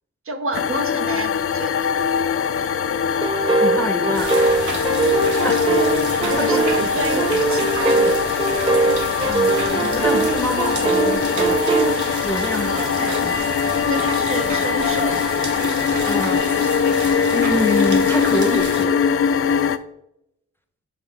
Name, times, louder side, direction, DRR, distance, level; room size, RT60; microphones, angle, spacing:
voice 1, 0.2-1.9 5.7-5.9 6.3-8.3 8.5-9.0 12.6-13.2 13.8-15.4, right 3 dB, 50° right, 7 dB, 0.7 m, -30 dB
sound 1, 0.5-19.8, left 7 dB, 50° left, 0.4 m, -22 dB
sound 2, 3.2-11.9, right 3 dB, 20° right, 0.3 m, -22 dB
voice 2, 3.6-4.5 5.4-5.7 6.2-6.6 9.2-11.9 12.2-13.5 16.0-16.9 17.3-19.0, left 1 dB, 10° left, 5 dB, 0.8 m, -27 dB
sound 3, 4.1-18.8, right 4 dB, 85° right, 1.1 m, -31 dB
7.8 x 5.4 x 3.4 m, 0.79 s
wide cardioid pair, 140°, 29 cm